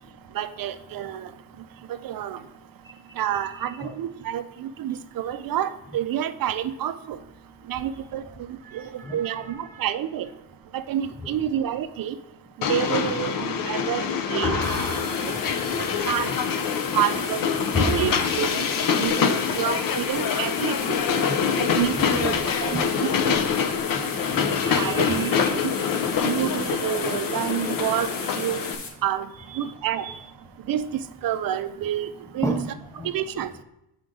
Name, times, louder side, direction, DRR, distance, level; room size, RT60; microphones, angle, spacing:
voice 1, 0.3-1.3 2.0-2.4 3.2-7.2 7.7-8.2 8.5-10.3 10.7-12.1 12.7-14.0 14.3-14.6 15.2-15.3 15.8-16.3 16.9-17.4 17.8-18.7 19.0-21.0 21.6-23.3 24.0-24.1 24.7-25.7 26.2-28.1 28.3-28.6 29.0-29.3 29.6-30.1 30.7-32.1 32.3-32.5 33.0-33.5, right 10 dB, 55° right, 11 dB, 0.5 m, -28 dB
voice 2, 9.0-9.8 11.2-11.5 13.2-13.3 14.4-15.8 17.7-18.0 21.1-21.4 22.1-22.4 22.7-22.8 23.9-24.0 24.3-25.5 29.5-29.7 30.0-30.1 32.4-32.7 33.0-33.1, left 1 dB, 10° left, -1 dB, 0.3 m, -32 dB
Train, 12.6-28.8, left 6 dB, 50° left, 0.6 m, -25 dB
sound 1, 14.6-28.9, left 4 dB, 70° left, 1.5 m, -38 dB
7.6 x 5.1 x 3.6 m, 0.87 s
cardioid pair, 155°, 44 cm